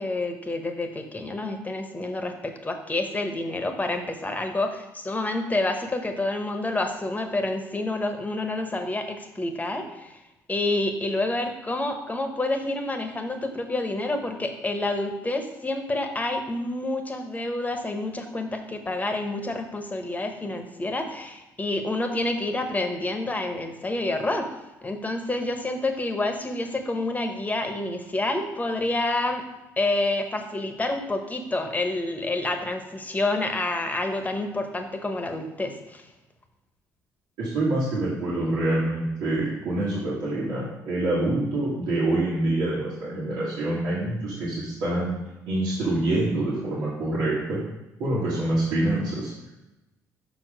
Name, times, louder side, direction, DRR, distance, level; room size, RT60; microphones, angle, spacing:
voice 1, 0.0-10.2 10.5-24.5 24.8-29.4 29.8-36.0, left 2 dB, 20° left, 5 dB, 1.1 m, -28 dB
voice 2, 37.4-45.1 45.5-47.6 48.0-49.3, right 2 dB, 80° right, -9 dB, 1.8 m, -26 dB
5.9 x 4.7 x 5.0 m, 0.99 s
supercardioid pair, 65°, 7 cm